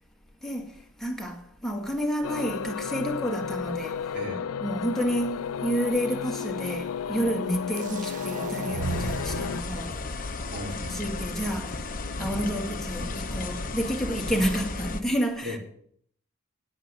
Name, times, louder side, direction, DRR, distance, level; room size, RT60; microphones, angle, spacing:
voice 1, 0.4-4.1 4.6-10.3 10.9-11.9 12.2-15.6, equal, ahead, 1.9 m, -30 dB
sound 1, 2.2-9.6, left 7 dB, 80° left, 0.4 m, -33 dB
sound 2, 7.8-9.7, right 5 dB, 35° right, 0.3 m, -35 dB
sound 3, 8.8-15.0, left 3 dB, 40° left, 0.9 m, -34 dB
voice 2, 10.5-11.5 15.4-15.6, left 1 dB, 55° right, 3.2 m, -37 dB
9.5 x 8.1 x 6.7 m
head